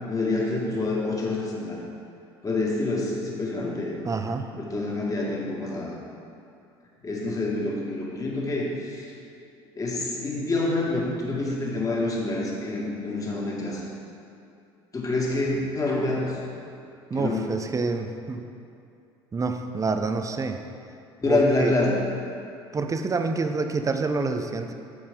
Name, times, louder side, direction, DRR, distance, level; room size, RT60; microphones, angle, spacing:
voice 1, 0.1-1.8 2.4-3.9 4.5-5.9 7.0-9.1 9.8-13.8 14.9-16.4 17.1-17.4 21.2-22.0, left 2 dB, 25° left, -3 dB, 2.0 m, -27 dB
voice 2, 4.0-4.5 17.1-18.4 19.3-20.6 21.3-21.7 22.7-24.7, right 4 dB, 25° right, 7 dB, 0.7 m, -27 dB
9.5 x 7.1 x 3.8 m, 2.5 s
hypercardioid pair, 65°, 14 cm